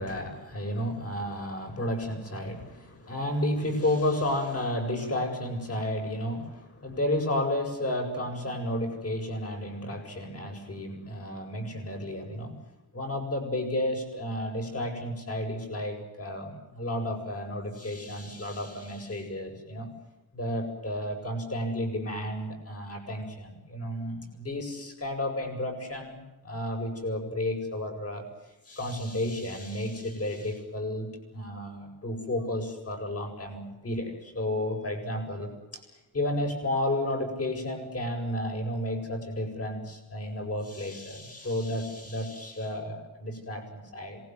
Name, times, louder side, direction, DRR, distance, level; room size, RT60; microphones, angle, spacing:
voice 1, 0.0-12.5 12.9-19.9 20.3-28.3 28.7-31.1 31.3-35.8 36.1-44.2, left 1 dB, 40° left, 4 dB, 7.9 m, -32 dB
26.5 x 21.0 x 9.5 m, 0.95 s
wide cardioid pair, 130°, 37 cm